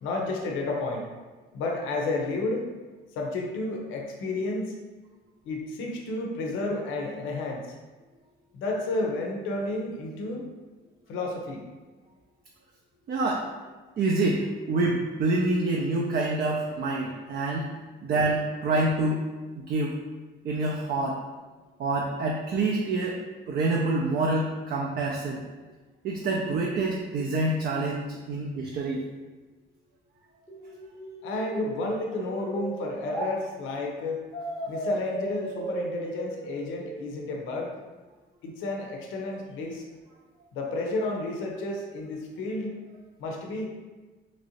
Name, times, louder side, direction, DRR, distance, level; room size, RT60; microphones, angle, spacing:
voice 1, 0.0-1.1 1.5-2.7 3.1-4.8 5.4-7.7 8.5-10.5 11.1-11.6 31.2-34.2 34.7-37.7 38.4-39.8 40.5-42.8 43.2-43.7, left 2 dB, 90° left, 0 dB, 0.5 m, -31 dB
voice 2, 13.1-13.5 14.0-17.7 18.0-19.3 19.6-20.0 20.4-21.2 21.8-23.2 23.5-25.4 26.0-29.0, right 2 dB, 50° right, -1 dB, 0.4 m, -27 dB
sound 1, 30.5-33.3 34.3-37.3, right 1 dB, 15° left, 0.8 m, -35 dB
2.9 x 2.6 x 2.8 m, 1.3 s
cardioid pair, 90°, 20 cm